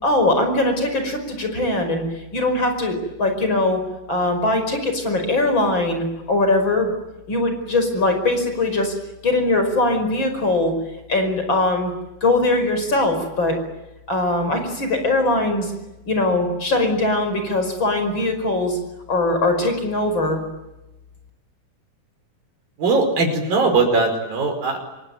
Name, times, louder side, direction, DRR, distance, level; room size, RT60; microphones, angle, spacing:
voice 1, 0.0-2.0 2.3-3.8 4.1-6.9 7.3-8.9 9.2-10.7 11.1-11.9 12.2-13.6 14.1-15.7 16.1-18.8 19.1-20.4, left 2 dB, 30° left, 6 dB, 5.9 m, -21 dB
voice 2, 22.8-24.8, right 3 dB, 75° right, 5 dB, 6.9 m, -19 dB
27.5 x 22.5 x 9.3 m, 0.99 s
omnidirectional pair, 4.1 m